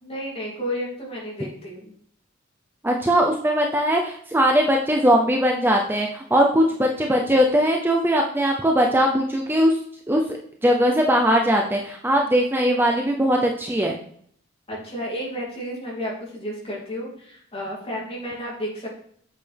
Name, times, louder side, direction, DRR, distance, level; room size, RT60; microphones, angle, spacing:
voice 1, 0.0-1.9 14.7-18.9, equal, 30° left, -3 dB, 2.8 m, -32 dB
voice 2, 2.8-9.8 10.1-14.0, equal, 10° right, 1 dB, 0.7 m, -20 dB
8.4 x 6.7 x 3.5 m, 0.62 s
head